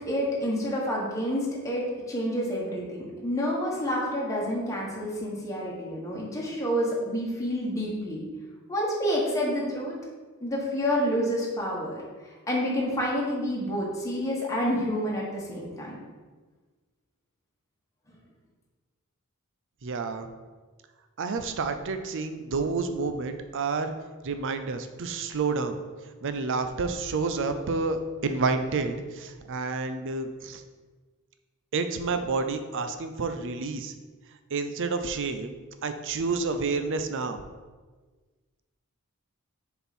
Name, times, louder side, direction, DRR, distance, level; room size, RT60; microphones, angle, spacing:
voice 1, 0.1-8.2 8.7-9.9 10.4-12.0 12.5-16.0, equal, 15° left, -4 dB, 1.5 m, -28 dB
voice 2, 19.8-20.3 21.2-23.9 24.2-25.8 26.2-30.6 31.7-33.9 34.5-35.5 35.8-37.4, right 4 dB, 60° right, 9 dB, 0.5 m, -29 dB
6.7 x 4.5 x 4.3 m, 1.4 s
head